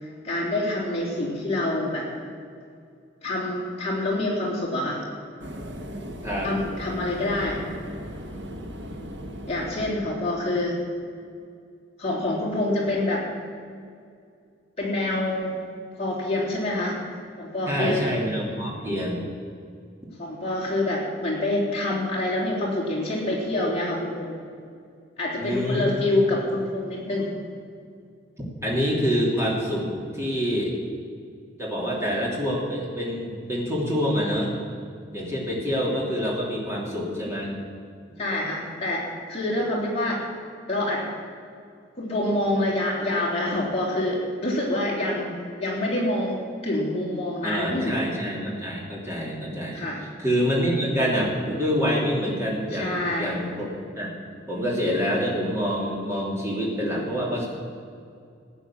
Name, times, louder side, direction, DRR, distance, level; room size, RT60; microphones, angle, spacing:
voice 1, 0.0-2.1 3.2-5.1 6.4-7.6 9.5-10.8 12.0-13.3 14.8-15.6 16.0-17.0 17.4-18.0 20.2-24.4 25.2-27.3 38.2-40.3 40.7-41.1 42.0-48.0 49.7-50.0 52.7-53.4, left 1 dB, 30° left, -4 dB, 3.6 m, -26 dB
sound 1, 5.4-10.5, equal, 70° right, 1.5 m, -37 dB
voice 2, 17.6-19.2 25.4-26.0 28.6-29.9 30.1-30.7 31.6-34.5 35.1-37.5 47.4-49.9 50.2-53.7 54.0-54.1 54.5-57.5, equal, 15° right, -4 dB, 3.1 m, -26 dB
15.5 x 9.6 x 7.5 m, 2.3 s
head